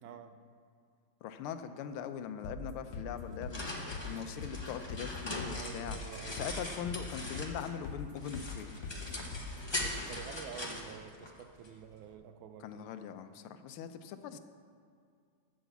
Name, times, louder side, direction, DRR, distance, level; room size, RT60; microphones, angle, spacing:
voice 1, 0.0-0.4 5.5-6.5 9.8-12.9, right 8 dB, 75° right, 8 dB, 1.4 m, -49 dB
voice 2, 1.2-6.0 6.3-8.7 12.6-14.4, left 8 dB, 85° left, 10 dB, 1.5 m, -41 dB
sound 1, 2.4-10.3, left 3 dB, 60° left, 0.8 m, -43 dB
sound 2, 3.1-7.8 8.2-11.7, left 1 dB, 30° left, 0.5 m, -41 dB
8.1 x 6.3 x 7.9 m, 2.3 s
omnidirectional pair, 2.3 m